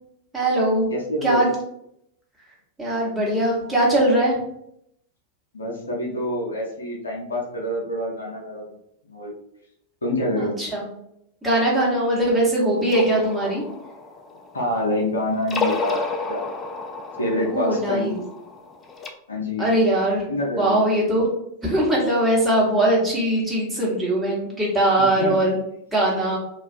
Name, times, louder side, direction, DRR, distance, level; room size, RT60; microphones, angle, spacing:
voice 1, 0.3-0.9 1.2-1.5 2.8-4.4 10.4-10.8 11.4-13.6 17.4-18.2 19.6-20.2 20.6-21.3 21.6-25.6 25.9-26.4, right 1 dB, 10° right, -5 dB, 1.0 m, -21 dB
voice 2, 0.9-1.4 5.5-8.8 9.1-9.3 10.0-10.5 14.5-16.5 17.2-18.1 19.3-19.7 20.3-20.8 25.2-25.4, left 1 dB, 75° left, -1 dB, 0.6 m, -26 dB
sound 1, 12.8-15.0 15.4-19.1, left 3 dB, 20° left, 0.3 m, -31 dB
2.5 x 2.3 x 2.4 m, 0.76 s
figure-of-eight pair, 90°, 0 cm